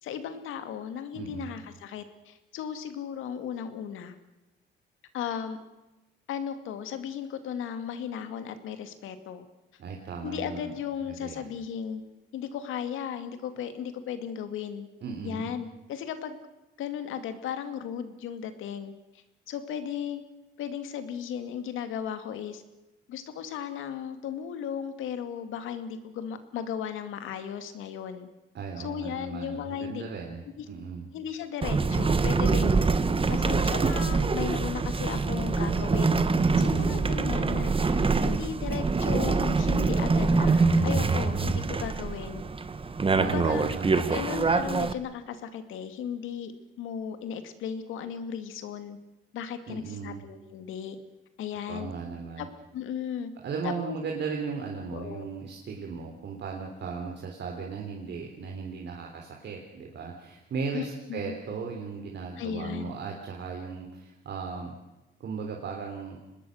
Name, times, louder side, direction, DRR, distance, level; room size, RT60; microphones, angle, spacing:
voice 1, 0.0-4.1 5.1-5.6 6.3-9.5 10.2-12.0 12.3-14.9 15.2-16.4 16.8-20.2 20.6-22.6 23.1-28.3 28.8-30.1 30.6-30.7 31.1-32.7 33.3-36.3 36.6-42.4 43.2-43.6 44.1-46.5 46.8-49.0 49.3-51.0 51.4-51.9 52.4-52.5 52.7-53.3 53.6-54.0 54.9-55.3 60.7-61.3 62.4-62.9, left 8 dB, 85° left, 9 dB, 2.4 m, -36 dB
voice 2, 1.1-1.6 9.8-10.7 11.1-11.5 15.0-15.5 28.5-30.4 30.7-31.1 36.5-37.1 43.1-44.1 49.7-50.2 51.7-52.5 53.4-64.7 65.2-66.2, right 5 dB, 60° right, 1 dB, 3.6 m, -36 dB
sound 1, 31.6-44.9, right 4 dB, 25° right, 1.4 m, -25 dB
25.0 x 20.0 x 6.6 m, 1.0 s
cardioid pair, 90°, 20 cm